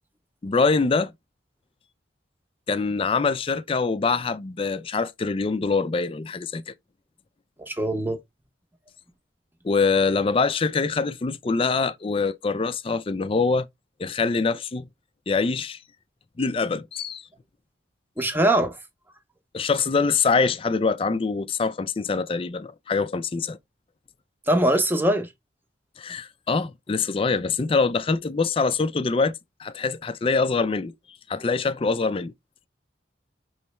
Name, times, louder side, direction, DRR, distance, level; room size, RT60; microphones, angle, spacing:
voice 1, 0.4-1.1 2.7-6.7 9.6-13.7 14.0-14.9 15.3-15.8 16.4-17.3 19.5-23.6 26.0-29.3 29.6-30.9 31.3-32.3, left 4 dB, 30° left, 0.4 m, -24 dB
voice 2, 7.6-8.2 18.2-18.8 24.5-25.3, right 1 dB, 10° right, 0.7 m, -22 dB
5.6 x 3.2 x 3.0 m
head